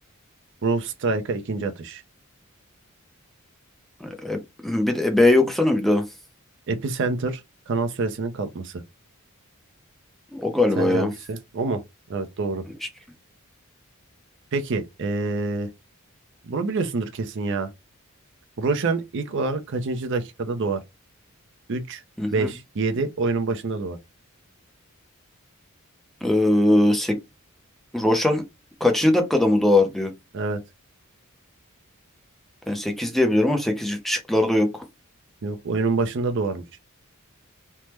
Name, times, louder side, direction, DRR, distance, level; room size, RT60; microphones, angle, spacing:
voice 1, 0.6-2.0 6.7-7.4 7.7-8.8 10.8-11.8 12.1-12.6 14.5-15.7 16.4-17.7 18.6-20.8 21.7-22.0 22.3-24.0 30.3-30.6 35.4-36.6, right 3 dB, 60° right, 0.5 m, -26 dB
voice 2, 4.0-6.0 10.3-11.1 22.2-22.5 26.2-27.2 27.9-28.4 28.8-30.1 32.7-34.7, left 1 dB, ahead, 0.5 m, -20 dB
3.3 x 2.1 x 2.9 m
head